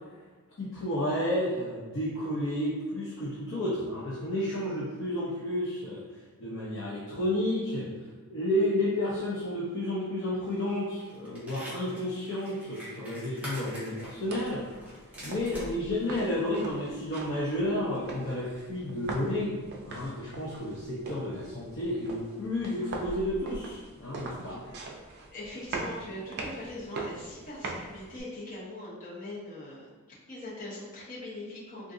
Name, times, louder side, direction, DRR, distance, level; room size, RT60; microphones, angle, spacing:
voice 1, 0.6-6.0 6.4-7.9 8.3-14.6 15.2-19.5 19.8-24.6, left 1 dB, 60° left, -7 dB, 0.6 m, -31 dB
sound 1, 10.4-10.7 11.0-15.7 16.1-16.2, equal, 5° right, 1.0 m, -45 dB
sound 2, 14.0-28.2, right 3 dB, 50° right, 0.4 m, -42 dB
voice 2, 15.1-15.6 24.5-24.8 25.3-29.9 30.3-31.9, left 1 dB, 40° left, -8 dB, 1.1 m, -41 dB
3.7 x 2.5 x 2.5 m, 1.4 s
head